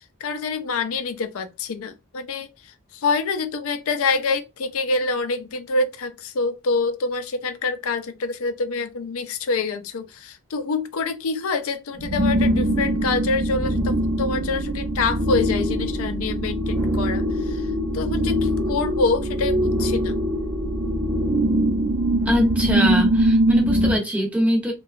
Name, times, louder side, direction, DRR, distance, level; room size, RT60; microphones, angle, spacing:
voice 1, 0.2-2.5 2.9-17.7 17.9-20.1, left 3 dB, 70° left, 0.4 m, -26 dB
sound 1, 11.9-24.0, right 1 dB, 50° right, 0.7 m, -22 dB
voice 2, 22.3-24.7, equal, 5° right, 0.6 m, -22 dB
2.8 x 2.2 x 2.4 m
head